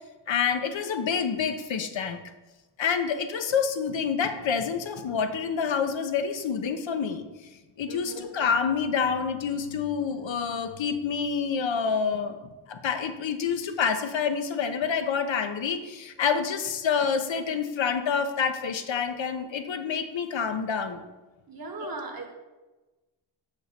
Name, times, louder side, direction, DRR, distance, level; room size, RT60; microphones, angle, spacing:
voice 1, 0.3-2.2 2.8-7.2 7.8-12.4 12.7-21.0 21.8-21.9, left 6 dB, 70° left, 8 dB, 0.9 m, -27 dB
voice 2, 7.9-8.2 21.5-22.3, right 3 dB, 45° right, 4 dB, 1.5 m, -38 dB
6.5 x 6.5 x 5.7 m, 1.1 s
wide cardioid pair, 135°, 47 cm